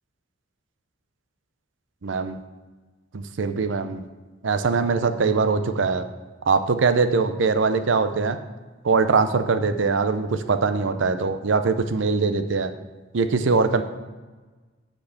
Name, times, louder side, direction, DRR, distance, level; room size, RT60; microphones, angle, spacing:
voice 1, 2.0-2.4 3.1-4.0 4.4-6.1 6.5-8.4 8.8-12.7 13.1-13.8, right 4 dB, 75° right, 9 dB, 0.6 m, -22 dB
7.8 x 4.5 x 7.0 m, 1.3 s
head